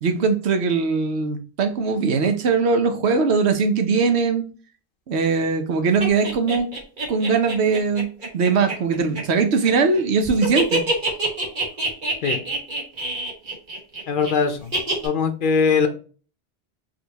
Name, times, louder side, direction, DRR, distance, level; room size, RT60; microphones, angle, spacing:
voice 1, 0.0-4.4 5.1-6.7 7.1-8.1 8.3-10.8, right 4 dB, 80° right, 6 dB, 1.0 m, -20 dB
sound 1, 6.0-10.0 10.3-14.3 14.7-15.1, right 1 dB, 50° right, 1.4 m, -26 dB
voice 2, 14.1-14.7 15.0-15.9, left 5 dB, 60° left, 6 dB, 0.7 m, -20 dB
4.9 x 2.8 x 2.8 m, 0.38 s
omnidirectional pair, 1.1 m